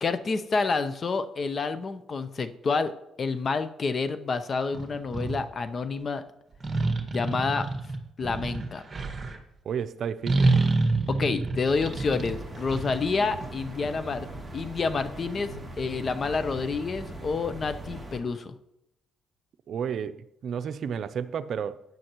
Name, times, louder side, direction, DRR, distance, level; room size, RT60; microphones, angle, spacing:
voice 1, 0.0-2.9 3.2-6.2 7.1-7.7 8.2-8.8 11.1-15.5 15.8-18.5, left 4 dB, 40° left, 0.8 m, -28 dB
sound 1, 4.7-5.4 6.6-9.4 10.3-13.5, right 3 dB, 35° right, 1.7 m, -27 dB
voice 2, 9.6-10.5 19.7-20.2 20.4-21.8, right 7 dB, 60° right, 0.6 m, -31 dB
sound 2, 11.6-18.2, right 2 dB, ahead, 3.1 m, -40 dB
14.0 x 9.2 x 3.1 m
cardioid pair, 90°, 0 cm